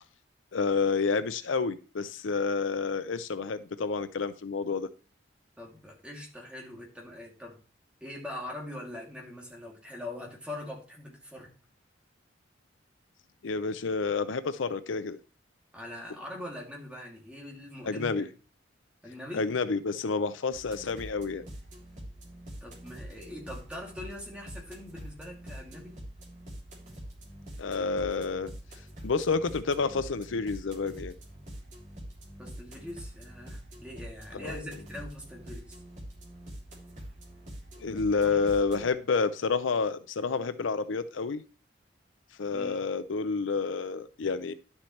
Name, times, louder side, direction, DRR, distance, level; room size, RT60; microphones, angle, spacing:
voice 1, 0.5-4.9 13.4-15.2 17.8-18.3 19.3-21.4 27.6-28.5 29.0-31.1 34.3-34.6 37.8-41.4 42.4-44.5, left 4 dB, 85° left, 0.6 m, -29 dB
voice 2, 5.6-7.6 8.0-11.5 15.7-18.3 19.0-19.4 22.6-26.0 32.4-35.8 38.2-38.4 38.8-38.9 42.5-42.8, left 1 dB, 5° right, 2.7 m, -42 dB
sound 1, 20.5-38.9, right 1 dB, 40° right, 3.3 m, -45 dB
11.0 x 7.3 x 3.2 m
head